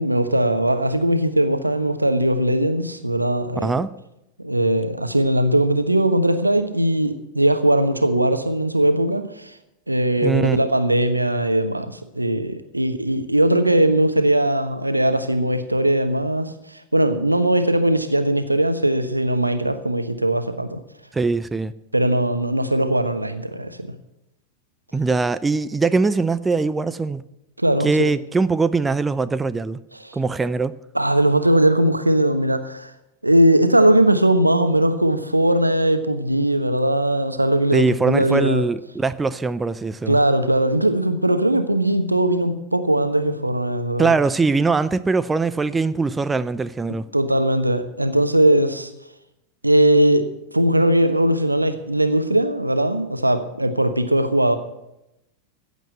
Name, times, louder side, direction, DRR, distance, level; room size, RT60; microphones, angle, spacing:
voice 1, 0.0-3.9 4.4-9.6 9.9-20.8 21.9-23.9 27.6-28.1 29.9-30.2 30.9-32.9 33.2-38.6 40.1-44.1 47.1-48.9 49.6-50.2 50.5-54.5, right 1 dB, 85° right, 1.2 m, -19 dB
voice 2, 10.2-10.6 21.1-21.7 24.9-27.2 27.8-29.8 30.1-30.8 37.7-40.2 44.0-47.1, right 4 dB, 10° right, 0.5 m, -21 dB
15.0 x 8.1 x 8.0 m
figure-of-eight pair, 90°, 0 cm